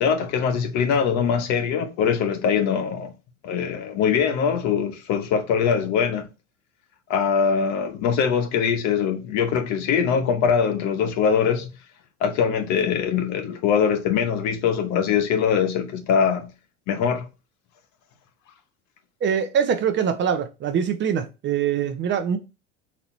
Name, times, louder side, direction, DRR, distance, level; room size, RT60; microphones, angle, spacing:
voice 1, 0.0-3.1 3.4-6.3 7.1-11.7 12.2-16.5 16.9-17.3, left 7 dB, 50° left, 1.0 m, -22 dB
voice 2, 19.2-22.4, right 7 dB, 30° right, 0.7 m, -23 dB
4.2 x 2.9 x 4.2 m
hypercardioid pair, 90°, 36 cm